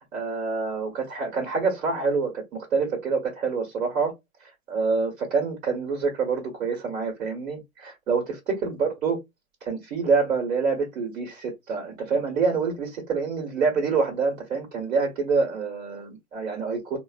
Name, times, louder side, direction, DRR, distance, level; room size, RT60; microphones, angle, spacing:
voice 1, 0.1-4.1 4.4-9.2 9.6-17.0, right 4 dB, 70° right, 1.2 m, -26 dB
3.7 x 2.0 x 2.4 m
hypercardioid pair, 115°, 41 cm